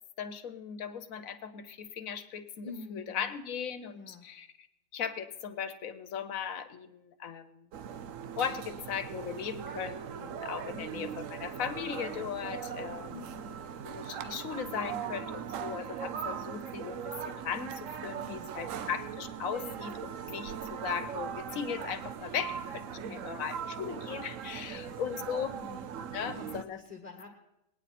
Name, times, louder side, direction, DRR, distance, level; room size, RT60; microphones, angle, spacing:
voice 1, 0.2-2.7 2.9-4.5 4.9-7.7 8.4-13.2 13.8-25.6 26.1-26.8, left 7 dB, 75° left, 10 dB, 1.3 m, -38 dB
voice 2, 2.6-3.3 3.9-4.3 10.7-11.1 13.1-13.6 18.2-18.9 22.3-23.3 24.7-25.9 26.2-27.3, left 4 dB, 30° left, 2 dB, 1.3 m, -48 dB
sound 1, 7.7-26.6, right 8 dB, 70° right, 1.0 m, -40 dB
21.0 x 9.3 x 4.2 m, 0.88 s
omnidirectional pair, 1.4 m